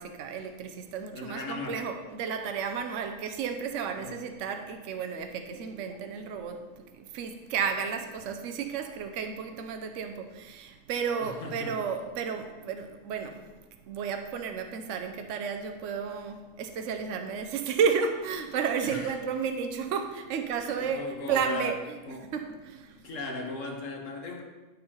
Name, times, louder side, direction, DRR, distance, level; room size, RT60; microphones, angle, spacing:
voice 1, 0.0-13.5 13.9-22.0 22.3-23.1, right 6 dB, 75° right, 6 dB, 1.0 m, -32 dB
voice 2, 1.1-1.8 4.0-4.2 11.2-11.8 18.8-19.1 20.8-21.7 22.1-22.3 23.0-24.4, left 2 dB, 75° left, 1 dB, 1.6 m, -37 dB
12.0 x 4.1 x 4.4 m, 1.2 s
omnidirectional pair, 1.3 m